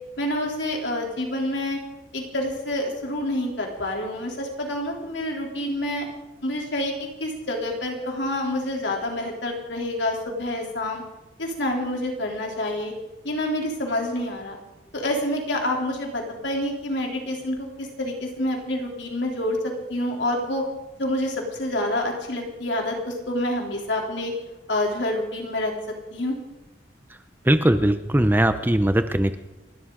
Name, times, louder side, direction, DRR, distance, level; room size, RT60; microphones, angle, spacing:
voice 1, 0.2-1.8 2.1-6.1 6.4-11.0 11.4-12.9 13.2-14.6 14.9-20.6 21.0-24.3 24.7-25.7 26.1-26.4, left 1 dB, 70° left, 1 dB, 3.4 m, -27 dB
voice 2, 27.4-29.4, right 1 dB, 10° right, 10 dB, 0.5 m, -20 dB
29.5 x 12.5 x 3.8 m, 1.0 s
head